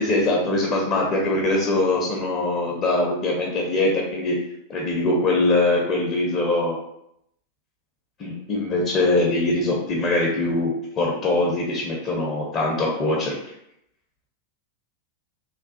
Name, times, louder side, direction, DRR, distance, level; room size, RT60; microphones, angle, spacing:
voice 1, 0.0-4.4 4.7-6.8 8.2-13.3, left 2 dB, 30° left, -2 dB, 0.7 m, -22 dB
3.2 x 2.3 x 2.6 m, 0.78 s
figure-of-eight pair, 90°, 0 cm